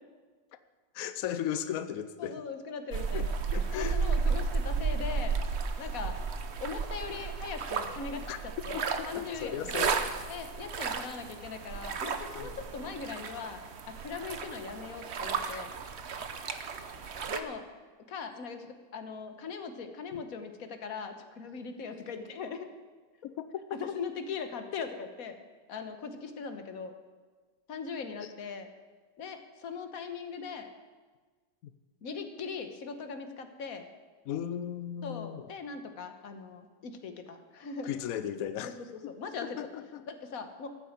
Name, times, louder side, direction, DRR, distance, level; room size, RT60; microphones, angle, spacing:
voice 1, 0.9-2.4 3.1-4.0 8.3-8.4 8.7-10.3 12.4-12.6 15.5-15.6 20.1-20.2 23.2-23.8 28.2-28.3 31.6-31.7 34.3-35.5 37.8-38.7 39.0-39.1 39.6-40.0, left 10 dB, 90° left, 11 dB, 0.7 m, -36 dB
voice 2, 2.2-3.3 3.7-5.3 5.8-6.2 6.6-9.7 10.3-13.6 13.9-15.7 17.2-17.6 18.1-22.7 23.7-25.4 25.7-26.9 27.7-28.7 29.2-30.7 32.0-33.9 35.0-37.9 38.6-39.7 40.1-40.7, left 5 dB, 50° left, 7 dB, 1.3 m, -40 dB
sound 1, 2.9-17.4, right 5 dB, 60° right, 0.6 m, -33 dB
14.0 x 9.2 x 7.3 m, 1.4 s
omnidirectional pair, 2.3 m